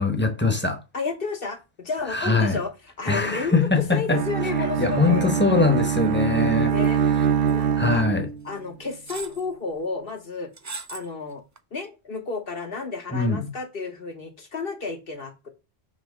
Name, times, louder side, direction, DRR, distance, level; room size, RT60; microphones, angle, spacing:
voice 1, 0.0-0.8 2.1-2.6 3.1-4.2 4.8-6.7 7.8-8.3 13.1-13.5, left 3 dB, 10° left, 0.9 m, -22 dB
voice 2, 0.9-5.3 6.6-7.0 7.5-8.1 8.4-10.5 10.9-11.4 11.7-15.5, left 4 dB, 60° left, 1.4 m, -32 dB
Bowed string instrument, 4.1-8.5, right 7 dB, 80° right, 1.0 m, -23 dB
sound 1, 6.8-7.2 7.5-7.6 8.5-8.6 9.1-9.5 10.6-11.1 11.6-11.7, right 4 dB, 30° right, 0.3 m, -37 dB
7.3 x 3.0 x 5.0 m
omnidirectional pair, 1.1 m